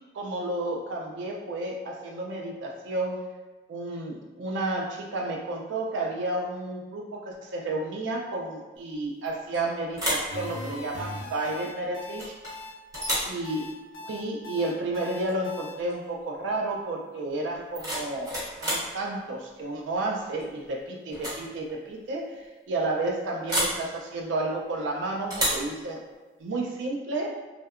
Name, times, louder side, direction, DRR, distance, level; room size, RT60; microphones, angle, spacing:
voice 1, 0.1-3.2 3.7-12.3 13.2-13.7 14.0-22.3 22.7-26.0 26.4-27.4, right 2 dB, 80° right, 0 dB, 0.4 m, -31 dB
sound 1, 9.2-9.6 9.9-10.3 12.2-12.5 12.9-13.4 15.2-15.4 15.7-16.1 17.5-18.9 20.4-20.7 21.1-21.4 21.7-21.8 23.5-23.8 25.3-25.7, equal, 20° right, 0.6 m, -30 dB
sound 2, 10.3-15.7, left 1 dB, 70° left, 0.5 m, -39 dB
2.7 x 2.1 x 2.4 m, 1.2 s
head